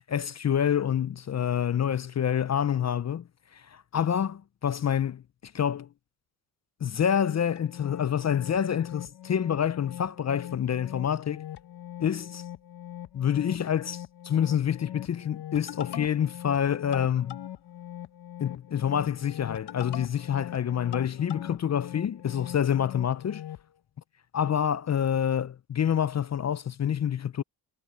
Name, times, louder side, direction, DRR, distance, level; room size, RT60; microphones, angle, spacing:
voice 1, 0.1-5.9 6.8-11.4 12.0-12.4 13.1-17.4 18.4-23.4 24.3-27.4, left 9 dB, 35° left, 0.6 m, -27 dB
sound 1, 7.6-23.7, left 11 dB, 60° left, 1.3 m, -42 dB
supercardioid pair, 70°, 46 cm